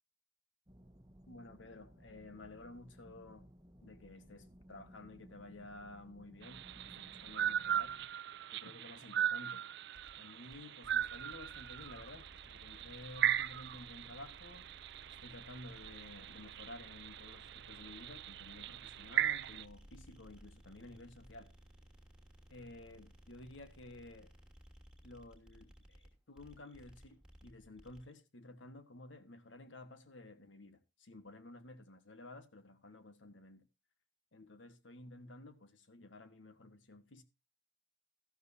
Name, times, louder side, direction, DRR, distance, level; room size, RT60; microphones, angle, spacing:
sound 1, 0.7-8.1, equal, 20° right, 1.2 m, -59 dB
voice 1, 1.3-3.5 3.8-8.0 8.5-9.8 10.2-14.9 15.2-21.5 22.5-24.3 25.0-33.7 34.3-37.2, left 2 dB, 80° left, 1.5 m, -53 dB
sound 2, 6.4-19.7, right 10 dB, 65° right, 0.5 m, -39 dB
sound 3, 9.9-28.1, equal, 5° right, 2.8 m, -59 dB
13.5 x 12.5 x 2.7 m
head